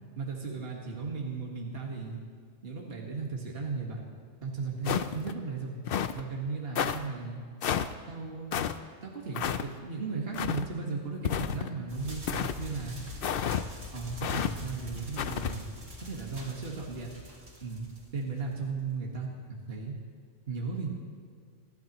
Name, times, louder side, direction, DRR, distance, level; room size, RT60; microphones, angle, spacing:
voice 1, 0.2-2.2 2.6-4.0 4.4-5.8 6.1-7.4 8.1-8.7 9.0-13.0 13.9-15.7 16.0-17.1 17.6-17.9 18.1-20.0 20.5-20.9, right 4 dB, 50° right, -1 dB, 1.9 m, -36 dB
sound 1, 4.8-5.3 5.9-6.2 6.8-7.0 7.6-7.9 8.5-8.7 9.3-9.6 10.3-10.6 11.2-11.7 12.3-12.6 13.2-13.6 14.2-14.5 15.2-15.5, left 8 dB, 60° left, 0.7 m, -30 dB
sound 2, 11.9-18.7, left 1 dB, 75° right, 3.3 m, -44 dB
27.0 x 11.5 x 3.0 m, 2.1 s
omnidirectional pair, 1.3 m